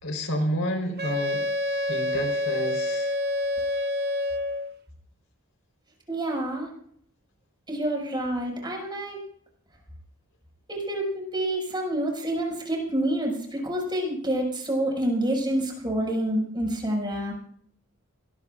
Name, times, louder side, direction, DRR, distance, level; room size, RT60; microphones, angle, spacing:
voice 1, 0.0-1.5 1.9-3.1, equal, 65° left, 4 dB, 4.1 m, -29 dB
Wind instrument woodwind instrument, 1.0-4.7, left 1 dB, 45° right, 1.2 m, -27 dB
voice 2, 6.1-6.7 7.7-9.2 10.7-17.3, right 1 dB, 20° right, -2 dB, 6.0 m, -28 dB
25.0 x 19.5 x 2.5 m, 0.65 s
head